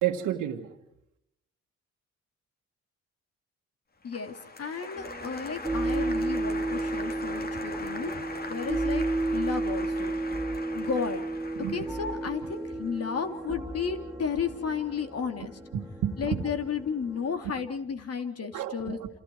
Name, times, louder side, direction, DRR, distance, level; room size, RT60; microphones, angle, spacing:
voice 1, 0.0-0.7 11.6-11.7 15.7-16.5 18.5-19.1, right 10 dB, 85° right, 1 dB, 1.9 m, -30 dB
voice 2, 4.0-8.1 8.5-9.0 9.3-10.1 10.7-11.2 11.7-15.6 16.2-19.0, left 6 dB, 50° left, 6 dB, 3.1 m, -33 dB
Applause, 4.1-13.1, left 3 dB, 30° left, 2.5 m, -41 dB
sound 1, 5.0-17.5, right 2 dB, ahead, 4.1 m, -33 dB
28.5 x 28.5 x 4.8 m, 0.78 s
cardioid pair, 90°, 30 cm